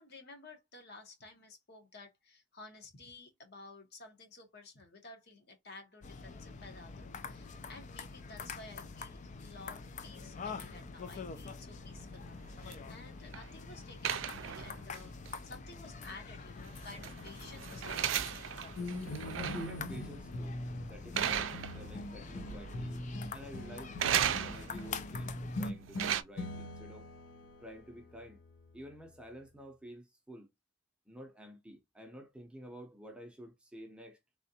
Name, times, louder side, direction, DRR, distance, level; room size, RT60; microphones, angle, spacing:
voice 1, 0.0-15.1 15.4-18.5, left 3 dB, 60° left, 1.2 m, -53 dB
sound 1, 6.0-25.7, left 4 dB, 40° left, 0.4 m, -46 dB
sound 2, 11.7-13.5 14.0-15.0 15.3-15.4 16.6-19.8 20.2-20.5 21.2-22.1 22.4-23.0 24.0-24.9 25.7-26.2, right 9 dB, 85° right, 0.4 m, -36 dB
sound 3, 18.7-29.3, left 1 dB, 75° left, 0.7 m, -43 dB
voice 2, 19.3-23.0 23.3-27.1 27.6-28.4 28.7-30.5 31.1-34.2, equal, 5° right, 0.7 m, -50 dB
3.3 x 2.5 x 2.8 m
head